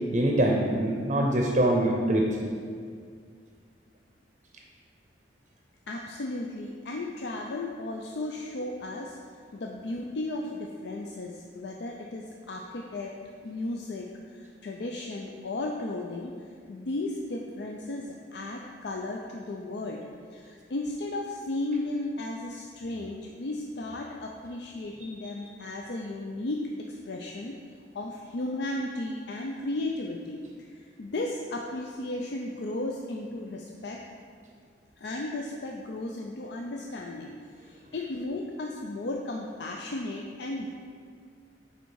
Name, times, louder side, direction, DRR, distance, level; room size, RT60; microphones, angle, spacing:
voice 1, 0.1-2.3, right 1 dB, 40° right, 1 dB, 0.6 m, -24 dB
voice 2, 5.9-9.2 9.5-13.1 13.4-16.3 16.7-20.0 20.3-27.5 27.9-30.4 30.7-34.0 35.0-40.7, left 2 dB, 65° left, 0 dB, 0.5 m, -35 dB
6.7 x 4.6 x 4.6 m, 2.2 s
head